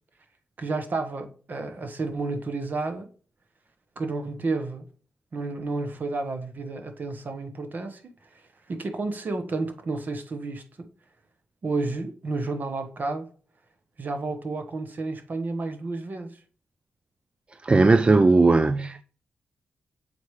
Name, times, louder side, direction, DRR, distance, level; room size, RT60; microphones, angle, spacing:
voice 1, 0.6-3.1 4.0-4.9 5.3-8.0 8.3-8.4 8.7-10.9 11.6-13.3 14.0-16.4, right 3 dB, 55° right, 1.2 m, -31 dB
voice 2, 17.6-19.0, right 3 dB, 30° right, 0.3 m, -18 dB
7.1 x 4.6 x 3.1 m
cardioid pair, 60°, 4 cm